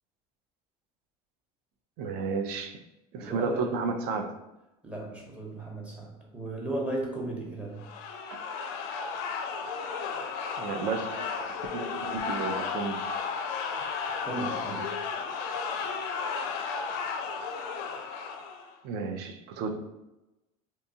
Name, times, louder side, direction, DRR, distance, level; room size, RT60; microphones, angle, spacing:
voice 1, 2.0-2.8 3.1-4.4 10.6-13.1 18.8-19.8, right 4 dB, 60° right, 7 dB, 0.4 m, -32 dB
voice 2, 3.2-3.7 4.8-7.9 14.2-14.9, right 1 dB, 5° right, -2 dB, 0.7 m, -35 dB
sound 1, 7.8-18.7, left 5 dB, 70° left, 0.4 m, -34 dB
2.7 x 2.2 x 2.7 m, 0.97 s
supercardioid pair, 100°, 18 cm